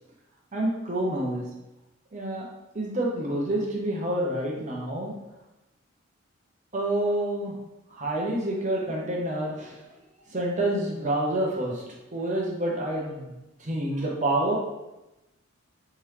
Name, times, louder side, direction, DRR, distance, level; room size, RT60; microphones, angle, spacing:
voice 1, 0.5-1.4 2.1-2.4 2.7-5.1 6.7-7.5 7.9-9.9 10.3-11.8 12.1-13.3 13.6-14.6, right 1 dB, 35° right, -2 dB, 0.8 m, -28 dB
3.5 x 3.1 x 3.2 m, 0.97 s
head